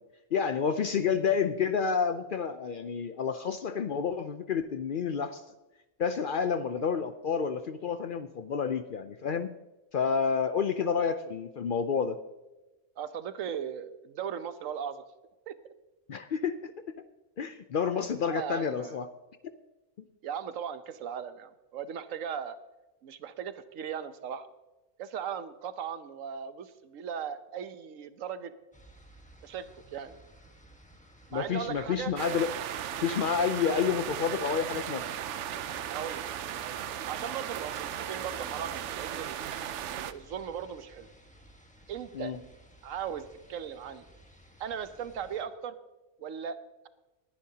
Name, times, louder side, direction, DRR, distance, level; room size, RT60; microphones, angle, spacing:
voice 1, 0.3-5.4 6.0-9.5 9.9-12.2 16.1-16.7 17.4-19.1 31.3-32.5 33.0-35.1 42.1-42.4, left 6 dB, 60° left, 10 dB, 0.6 m, -29 dB
voice 2, 13.0-15.0 15.5-15.6 18.3-19.0 20.2-22.6 23.0-24.5 25.0-28.5 29.4-30.2 31.3-32.1 35.9-36.3 36.6-39.4 39.9-41.1 41.9-42.4 42.8-44.1 44.6-45.8 46.2-46.6, right 8 dB, 85° right, 11 dB, 1.2 m, -38 dB
sound 1, 28.7-45.4, right 1 dB, 5° left, 1.3 m, -55 dB
sound 2, 32.2-40.1, right 10 dB, 70° right, 0.9 m, -36 dB
20.0 x 10.5 x 2.8 m, 1.1 s
omnidirectional pair, 1.3 m